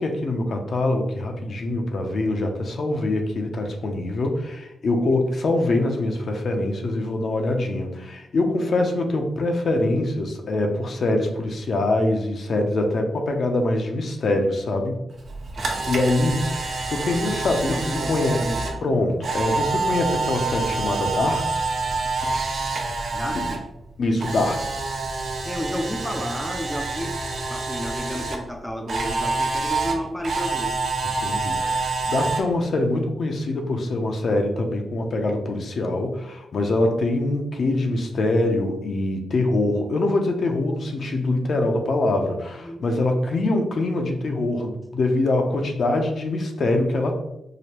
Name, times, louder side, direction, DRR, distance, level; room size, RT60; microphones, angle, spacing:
voice 1, 0.0-15.0 15.8-18.4 18.8-22.0 23.3-23.5 24.0-24.7 31.2-47.1, left 2 dB, 55° left, 3 dB, 0.5 m, -24 dB
Camera, 15.2-23.6 23.9-28.4 28.9-32.4, right 3 dB, 65° right, 0.7 m, -27 dB
voice 2, 15.5-15.9 17.3-18.8 23.1-23.6 25.4-27.2 27.5-30.7 42.5-42.8, equal, 10° left, 3 dB, 0.4 m, -32 dB
4.8 x 2.2 x 2.9 m, 0.85 s
cardioid pair, 105°, 0 cm